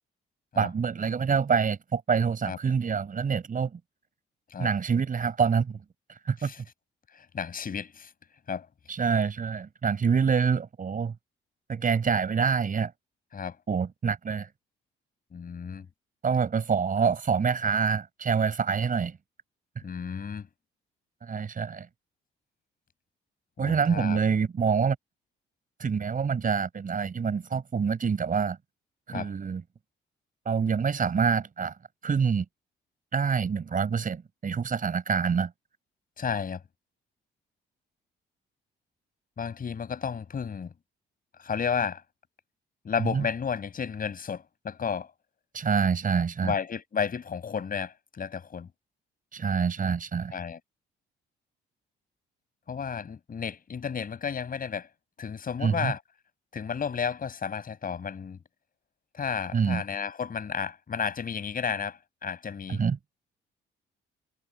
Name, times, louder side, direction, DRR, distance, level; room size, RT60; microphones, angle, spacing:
voice 1, 0.6-3.8 4.6-5.8 6.2-6.5 8.9-11.1 11.7-12.9 13.7-14.5 16.2-19.2 21.2-21.9 23.6-25.0 25.8-28.6 29.1-29.6 30.4-31.7 32.0-32.4 33.1-35.5 43.0-43.3 45.5-46.5 49.3-50.3 55.6-55.9 59.5-59.8 62.7-63.0, right 6 dB, 45° right, 6.1 m, -26 dB
voice 2, 7.1-8.1 8.5-8.7 13.3-13.6 15.3-15.9 19.8-20.5 23.6-24.2 29.1-29.3 36.2-36.6 39.4-40.7 41.4-42.0 42.8-45.1 46.4-48.7 50.3-50.6 52.7-54.9 55.2-56.0 56.5-58.4 59.1-62.8, left 6 dB, 45° left, 6.9 m, -32 dB
cardioid pair, 90°, 20 cm